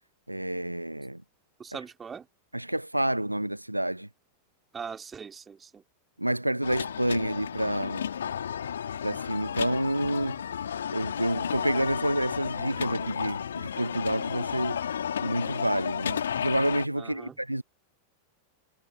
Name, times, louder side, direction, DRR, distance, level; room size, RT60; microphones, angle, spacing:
voice 1, 0.3-1.2 2.5-4.1 6.2-8.1 9.0-10.4 10.9-14.8 15.2-17.6, right 1 dB, 85° right, 0.8 m, -29 dB
voice 2, 1.6-2.3 4.7-5.8 16.9-17.4, right 6 dB, 20° right, 3.1 m, -41 dB
sound 1, 6.6-16.9, left 8 dB, 65° left, 3.3 m, -32 dB
figure-of-eight pair, 90°, 0 cm